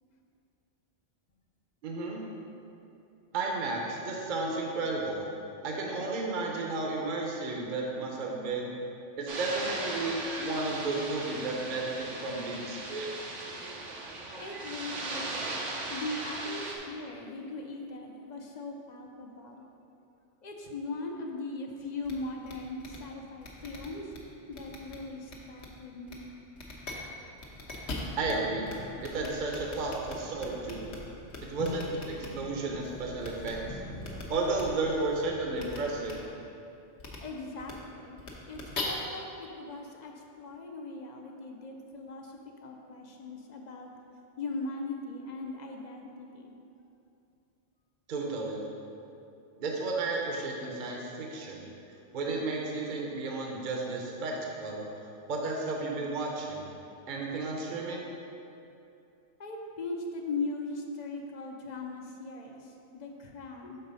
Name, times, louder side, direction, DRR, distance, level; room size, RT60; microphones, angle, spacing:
voice 1, 1.8-2.2 3.3-5.2 5.6-8.7 9.2-13.1 28.2-28.7 29.0-30.8 31.5-31.8 32.3-33.8 34.3-36.2 48.1-48.6 49.6-51.7 52.1-54.9 55.3-56.7 57.1-58.1, right 3 dB, 45° right, -1 dB, 0.8 m, -33 dB
sound 1, 9.3-16.8, right 2 dB, 80° right, 1.2 m, -38 dB
voice 2, 14.3-15.4 15.9-19.6 20.4-24.1 24.5-26.3 31.6-31.8 37.2-38.2 38.5-43.9 44.4-46.5 59.4-63.8, left 3 dB, 45° left, 2 dB, 0.6 m, -39 dB
sound 2, 22.0-22.1 22.5-22.6 22.8-23.0 23.4-24.2 24.5-25.0 25.3-25.7 26.1-26.2 26.5-26.9 27.4-28.3 28.7-28.8 29.0-31.0 31.3-32.3 33.2-33.5 34.0-34.2 34.5-34.6 35.6-35.8 36.0-36.1 37.0-37.2 37.6-37.7 38.2-38.8, left 3 dB, 70° left, 1.2 m, -41 dB
sound 3, 28.0-35.9, left 1 dB, 85° left, 1.1 m, -48 dB
6.8 x 3.9 x 5.3 m, 2.7 s
omnidirectional pair, 1.2 m